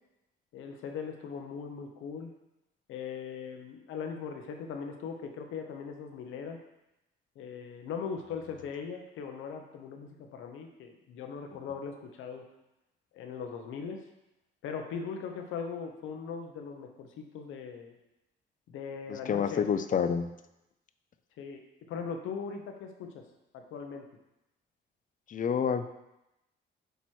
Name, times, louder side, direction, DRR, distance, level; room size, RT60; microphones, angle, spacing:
voice 1, 0.5-2.3 2.9-6.6 7.4-12.4 13.1-14.0 14.6-18.0 18.7-19.6 21.4-21.6 21.9-23.2 23.5-24.0, left 6 dB, 85° left, 4 dB, 0.8 m, -39 dB
voice 2, 19.1-20.3 25.3-25.9, left 7 dB, 40° left, 10 dB, 0.5 m, -28 dB
8.1 x 3.0 x 4.4 m, 0.92 s
cardioid pair, 90°, 20 cm